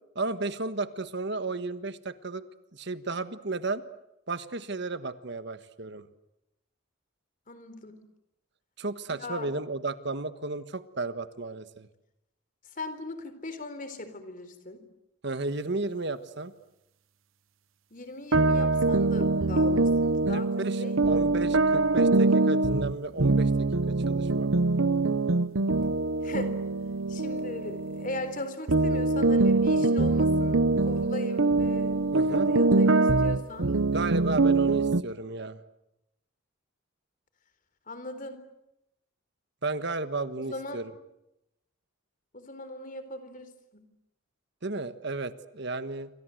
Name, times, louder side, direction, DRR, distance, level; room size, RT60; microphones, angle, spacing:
voice 1, 0.1-2.4 2.7-3.8 4.3-6.1 8.8-11.9 15.2-16.5 20.3-23.5 23.9-24.5 32.1-32.5 33.9-35.6 39.6-40.9 44.6-46.1, right 3 dB, 55° right, 12 dB, 1.4 m, -33 dB
voice 2, 7.5-8.0 9.2-9.5 12.7-14.8 17.9-20.5 20.8-21.3 26.2-26.6 27.1-32.0 32.3-33.7 37.9-38.4 40.5-40.8 42.3-43.9, left 2 dB, 40° left, 11 dB, 3.9 m, -39 dB
sound 1, 18.3-28.4 28.7-35.0, right 3 dB, 75° right, 1.0 m, -24 dB
28.0 x 26.0 x 7.8 m, 0.86 s
head